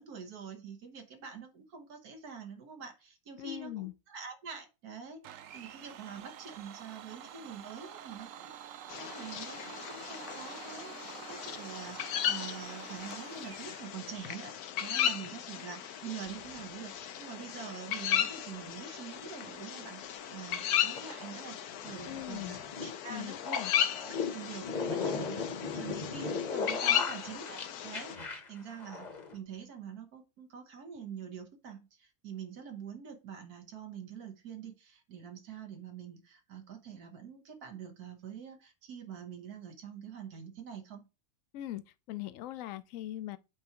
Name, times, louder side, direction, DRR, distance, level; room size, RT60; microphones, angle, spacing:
voice 1, 0.0-14.5 14.8-23.6 24.1-41.0, right 7 dB, 85° right, 1.7 m, -46 dB
voice 2, 3.4-3.9 22.0-22.6 23.1-23.7 41.5-41.8 42.1-43.4, left 14 dB, 70° left, 0.9 m, -40 dB
Domestic sounds home sounds, 5.2-13.9, right 10 dB, 70° right, 0.9 m, -48 dB
sound 1, 8.9-28.2, left 10 dB, 85° left, 1.2 m, -36 dB
sound 2, 16.3-16.6 20.5-29.4, left 5 dB, 35° left, 1.0 m, -38 dB
8.5 x 4.5 x 2.9 m
omnidirectional pair, 1.6 m